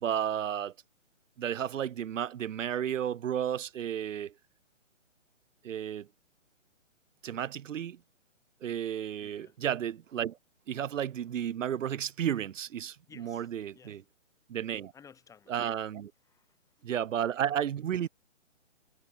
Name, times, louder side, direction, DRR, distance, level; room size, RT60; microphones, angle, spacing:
voice 1, 0.0-0.7 1.4-4.3 5.6-6.1 7.2-8.0 8.6-10.4 10.7-14.0 14.5-14.9 15.5-16.1 16.8-18.1, right 9 dB, 85° right, 0.6 m, -32 dB
voice 2, 9.2-9.6 13.1-14.0 14.6-15.6 16.2-16.9, left 7 dB, 10° left, 5.0 m, -57 dB
hypercardioid pair, 155°, 38 cm